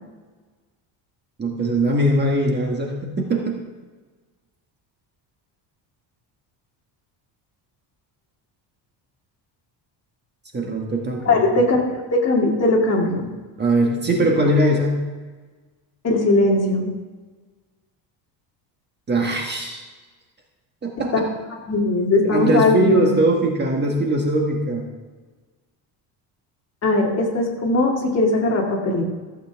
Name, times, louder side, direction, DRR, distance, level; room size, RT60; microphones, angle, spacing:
voice 1, 1.4-3.6 10.5-11.6 13.6-15.0 19.1-19.8 20.8-21.3 22.2-24.9, right 1 dB, 25° right, 0 dB, 1.3 m, -21 dB
voice 2, 11.3-13.3 16.0-16.9 21.7-23.1 26.8-29.0, left 2 dB, 35° left, -1 dB, 2.1 m, -19 dB
15.0 x 8.0 x 3.5 m, 1.3 s
cardioid pair, 145°, 44 cm